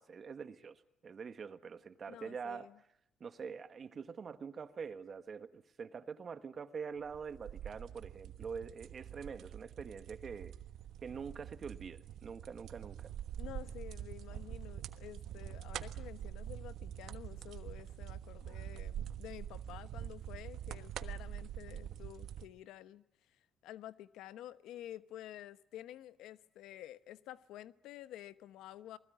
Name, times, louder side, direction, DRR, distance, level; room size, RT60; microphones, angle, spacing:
voice 1, 0.0-2.7 3.2-10.5 11.0-13.1, right 6 dB, 40° right, 1.5 m, -45 dB
voice 2, 2.1-2.7 13.4-23.0 23.6-29.0, left 13 dB, 90° left, 1.0 m, -50 dB
sound 1, 7.0-22.5, right 10 dB, 75° right, 1.2 m, -45 dB
28.0 x 20.5 x 9.3 m
cardioid pair, 115°, 0 cm